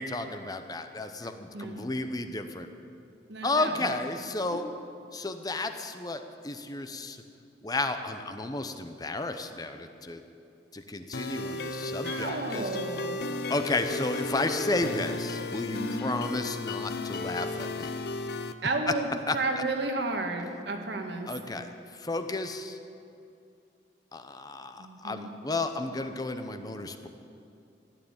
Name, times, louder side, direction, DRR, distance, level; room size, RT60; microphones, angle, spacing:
voice 1, 0.0-2.7 3.4-4.7 5.1-7.2 7.6-10.2 10.7-12.7 13.5-17.9 18.9-19.0 19.3-19.6 21.3-22.8 24.1-27.1, left 2 dB, 20° left, 8 dB, 0.8 m, -32 dB
voice 2, 1.5-1.9 3.3-3.9 12.0-13.2 15.7-16.1 18.6-21.3 24.8-25.3, right 2 dB, 75° right, 4 dB, 1.7 m, -32 dB
sound 1, 11.1-18.5, left 2 dB, 60° left, 0.7 m, -34 dB
15.0 x 9.5 x 8.9 m, 2.6 s
head